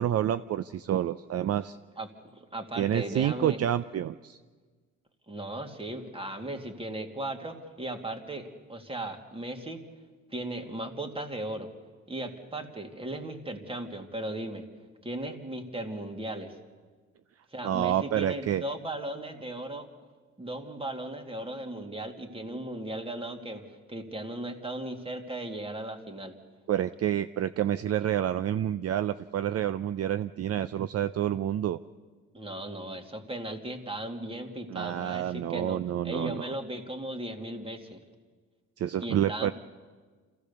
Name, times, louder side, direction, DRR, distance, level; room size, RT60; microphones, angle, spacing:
voice 1, 0.0-1.8 2.8-4.4 17.6-18.6 26.7-31.8 34.7-36.5 38.8-39.5, right 11 dB, 55° right, 13 dB, 0.5 m, -28 dB
voice 2, 2.3-3.6 5.3-9.8 10.3-11.7 12.1-14.6 15.0-16.5 17.5-19.9 20.4-26.3 32.3-35.8 36.0-38.0 39.0-39.5, right 1 dB, 20° right, 4 dB, 2.4 m, -37 dB
26.5 x 15.5 x 6.9 m, 1.4 s
cardioid pair, 90°, 30 cm